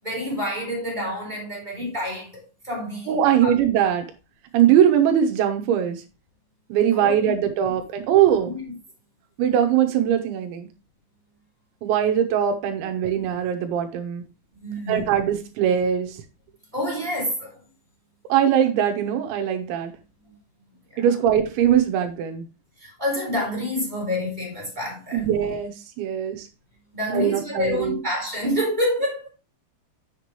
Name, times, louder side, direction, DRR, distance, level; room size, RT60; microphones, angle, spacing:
voice 1, 0.0-3.5 6.9-7.4 8.4-8.6 12.8-12.9 14.6-15.1 16.7-17.6 20.2-20.3 20.9-21.0 22.8-25.3 26.9-29.3, left 1 dB, 10° right, 3.8 m, -28 dB
voice 2, 3.1-4.1 4.5-6.0 6.7-8.5 9.4-10.7 11.8-14.2 14.9-16.2 18.3-19.9 21.0-22.5 25.1-26.5 27.1-28.0, right 9 dB, 85° right, 3.4 m, -21 dB
7.9 x 7.5 x 3.2 m
omnidirectional pair, 5.2 m